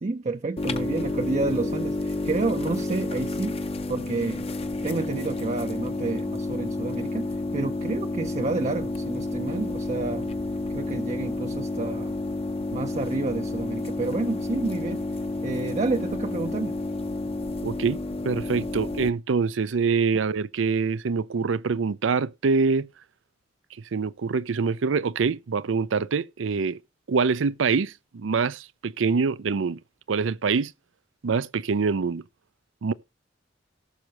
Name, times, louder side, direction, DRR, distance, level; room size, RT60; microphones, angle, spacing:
voice 1, 0.0-3.6 3.9-4.5 4.8-10.3 10.7-12.1 12.7-15.0 15.4-16.8, right 3 dB, 35° right, 0.5 m, -29 dB
sound 1, 0.6-19.1, left 2 dB, 30° left, 0.7 m, -30 dB
voice 2, 17.6-18.0 18.2-22.9 23.9-26.8 27.1-29.8 30.1-30.7 31.2-32.2 32.8-32.9, right 5 dB, 85° right, 0.5 m, -25 dB
18.5 x 6.3 x 3.0 m
head